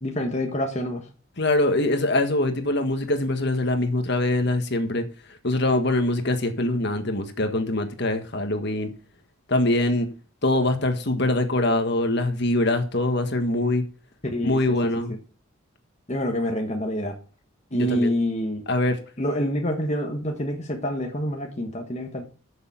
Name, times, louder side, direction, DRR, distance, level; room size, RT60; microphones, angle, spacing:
voice 1, 0.0-1.0 14.3-14.6 16.1-17.2 17.7-18.6 19.2-22.2, equal, 30° left, 1.3 m, -27 dB
voice 2, 1.4-5.0 5.4-8.9 9.5-10.1 10.4-13.8 14.4-15.1 17.7-18.1 18.7-19.0, left 2 dB, 50° left, 1.6 m, -23 dB
11.5 x 6.8 x 5.7 m
head